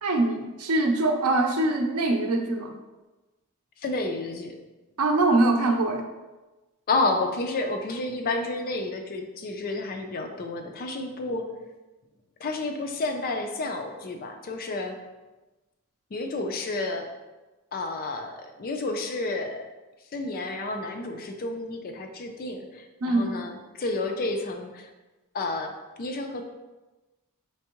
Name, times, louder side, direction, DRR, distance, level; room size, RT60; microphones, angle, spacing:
voice 1, 0.0-2.7 5.0-6.0 23.0-23.3, right 2 dB, 85° right, 4 dB, 0.6 m, -23 dB
voice 2, 3.8-4.6 6.9-11.5 12.4-15.0 16.1-17.1 17.7-19.6 20.1-24.9 25.3-25.7 26.0-26.4, left 2 dB, 40° left, 5 dB, 0.4 m, -30 dB
4.5 x 3.4 x 2.9 m, 1.1 s
head